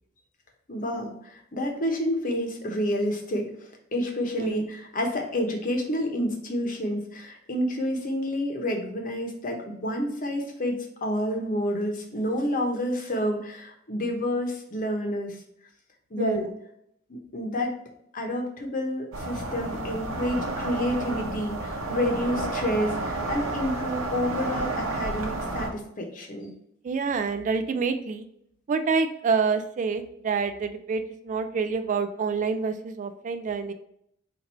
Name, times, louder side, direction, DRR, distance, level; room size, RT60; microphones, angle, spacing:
voice 1, 0.7-15.4 16.1-16.5 17.1-17.7 18.1-26.5, equal, 40° left, 2 dB, 0.9 m, -29 dB
voice 2, 16.2-16.5 26.8-28.2 28.7-33.7, right 5 dB, 40° right, 9 dB, 0.3 m, -27 dB
sound 1, 19.1-25.7, right 2 dB, 85° right, 0.8 m, -31 dB
4.5 x 2.6 x 4.0 m, 0.72 s
head